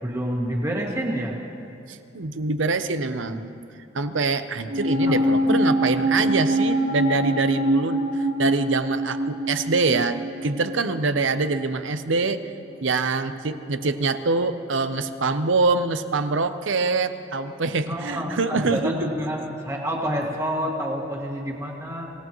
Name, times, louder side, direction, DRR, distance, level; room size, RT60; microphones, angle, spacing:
voice 1, 0.0-1.3 2.9-3.4 5.0-5.6 5.9-6.3 17.9-22.1, equal, 15° right, -1 dB, 2.1 m, -29 dB
voice 2, 1.9-3.5 3.9-12.4 12.8-18.9, right 3 dB, 70° right, 10 dB, 0.8 m, -25 dB
sound 1, 4.7-11.2 11.5-11.6, right 1 dB, 85° right, 5.1 m, -24 dB
26.5 x 17.5 x 3.1 m, 2.8 s
head